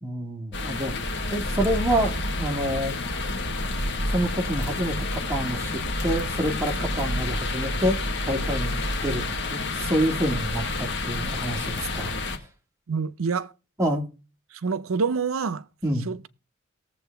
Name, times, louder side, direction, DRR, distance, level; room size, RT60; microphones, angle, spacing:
voice 1, 0.0-0.9 1.3-3.0 4.1-8.0 8.3-8.8 9.0-12.4 13.8-14.1 15.8-16.1, equal, 15° right, 2.0 m, -27 dB
sound 1, 0.5-12.4, left 2 dB, 55° left, 1.4 m, -29 dB
voice 2, 12.9-13.5 14.5-15.7 16.0-16.3, right 5 dB, 80° right, 0.6 m, -27 dB
18.5 x 7.5 x 3.4 m
head